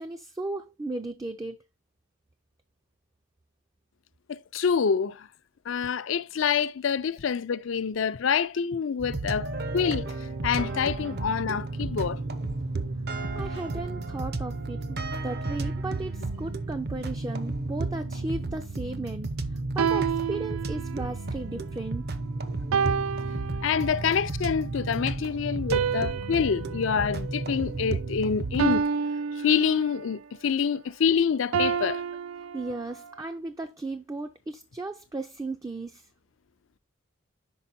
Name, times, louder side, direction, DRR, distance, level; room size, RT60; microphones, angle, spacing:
voice 1, 0.0-1.6 13.4-22.1 32.5-36.1, right 2 dB, 15° right, 0.4 m, -35 dB
voice 2, 4.3-5.3 5.7-9.5 9.7-10.0 10.4-12.2 23.6-28.8 29.4-32.0, left 6 dB, 65° left, 0.4 m, -26 dB
sound 1, 9.0-28.8, right 2 dB, 50° right, 0.7 m, -33 dB
sound 2, 19.8-21.2 22.7-24.1 25.7-28.1 28.6-30.1 31.5-33.1, right 6 dB, 85° right, 0.4 m, -30 dB
5.4 x 5.3 x 4.2 m
head